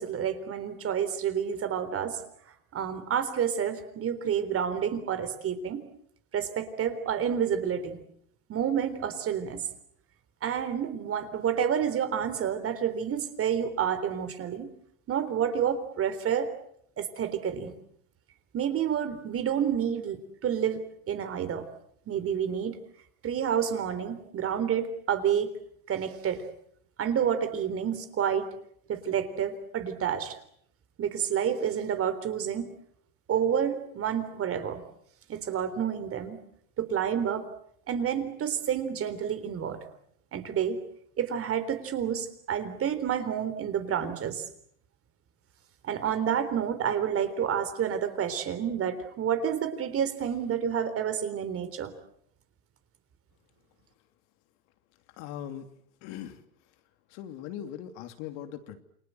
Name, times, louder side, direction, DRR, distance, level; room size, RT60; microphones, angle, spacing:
voice 1, 0.0-2.2 2.7-5.8 6.3-8.0 8.5-9.6 10.4-14.7 15.1-16.5 17.0-17.8 18.5-20.8 21.1-21.7 22.1-22.8 23.2-25.5 25.9-26.4 27.0-28.5 28.9-30.4 31.0-32.7 33.3-34.8 35.3-36.4 36.8-37.5 37.9-39.8 40.3-40.8 41.2-44.4 45.8-51.9, right 8 dB, 30° right, 11 dB, 3.7 m, -29 dB
voice 2, 55.2-55.7 56.0-56.4 57.1-58.8, left 10 dB, 55° left, 8 dB, 3.1 m, -40 dB
29.0 x 24.0 x 7.9 m, 0.67 s
supercardioid pair, 125°, 44 cm